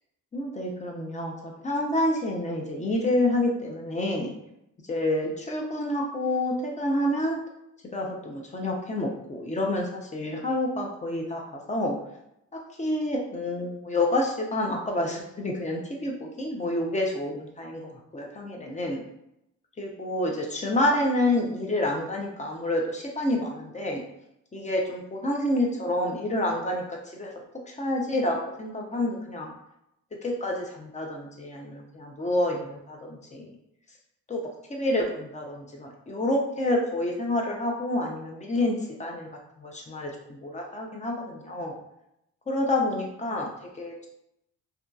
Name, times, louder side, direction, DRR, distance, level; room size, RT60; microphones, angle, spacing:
voice 1, 0.3-4.3 4.9-7.4 7.9-12.0 12.5-19.0 19.8-24.0 24.5-27.3 27.7-29.5 30.2-33.5 34.3-39.3 39.6-41.8 42.5-43.5 43.8-44.1, left 1 dB, 25° left, 0 dB, 0.5 m, -28 dB
2.7 x 2.3 x 2.3 m, 0.80 s
cardioid pair, 90°, 30 cm